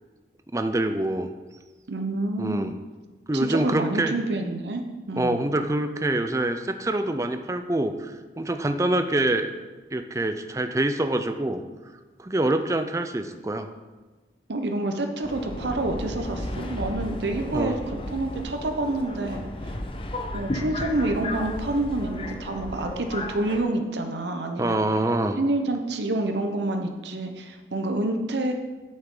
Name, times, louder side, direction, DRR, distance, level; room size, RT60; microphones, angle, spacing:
voice 1, 0.5-1.3 2.4-2.7 3.3-4.1 5.2-9.5 9.9-11.6 12.2-13.7 17.4-17.8 24.6-25.4, right 1 dB, 15° right, 8 dB, 0.4 m, -25 dB
voice 2, 1.9-2.7 3.3-5.5 14.5-19.7 20.3-24.8 25.4-28.5, right 2 dB, 80° right, 5 dB, 0.9 m, -28 dB
Subway metro underground, 15.2-23.6, left 1 dB, 30° left, 0.6 m, -34 dB
8.8 x 7.4 x 3.8 m, 1.3 s
head